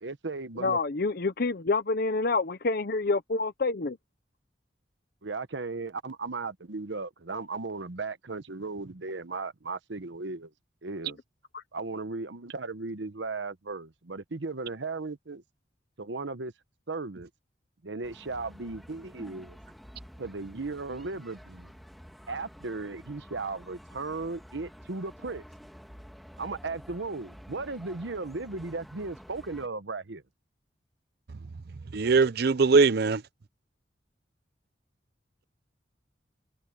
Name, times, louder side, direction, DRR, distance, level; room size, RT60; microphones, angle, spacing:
voice 1, 0.0-0.8 5.2-10.5 10.8-11.2 11.7-15.4 16.0-16.5 16.9-17.3 17.8-19.6 20.2-21.7 22.3-25.4 26.4-30.2, right 3 dB, 80° right, 1.0 m, -36 dB
voice 2, 0.6-4.0 11.5-11.6, left 3 dB, 55° left, 0.8 m, -27 dB
sound 1, 18.0-29.7, equal, ahead, 2.1 m, -50 dB
voice 3, 31.9-33.2, right 4 dB, 60° right, 0.6 m, -21 dB
head